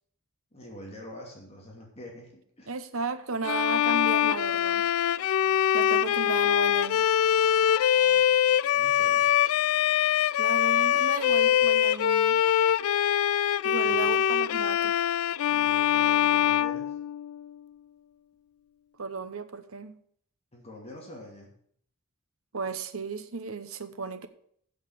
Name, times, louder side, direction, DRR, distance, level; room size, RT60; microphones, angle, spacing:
voice 1, 0.5-2.8 5.4-5.7 8.0-8.2 8.7-9.3 13.8-14.2 15.5-16.9 20.5-21.6, left 1 dB, 30° left, 2.6 m, -46 dB
voice 2, 2.7-4.9 5.7-7.0 10.4-12.4 13.6-14.9 19.0-20.0 22.5-24.3, right 4 dB, 80° right, 1.0 m, -34 dB
Bowed string instrument, 3.4-17.5, left 10 dB, 85° left, 0.3 m, -23 dB
7.9 x 7.2 x 8.6 m
head